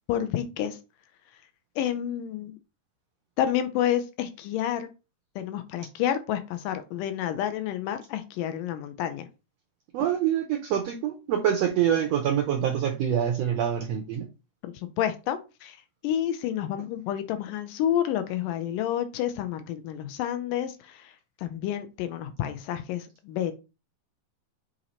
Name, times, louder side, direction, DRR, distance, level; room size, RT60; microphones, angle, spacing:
voice 1, 0.1-0.8 1.8-2.5 3.4-4.9 5.4-9.3 14.6-15.8 16.0-23.5, left 11 dB, 80° left, 9 dB, 2.2 m, -29 dB
voice 2, 9.9-14.3, right 9 dB, 85° right, 5 dB, 1.5 m, -25 dB
7.7 x 2.9 x 4.2 m, 0.29 s
omnidirectional pair, 3.8 m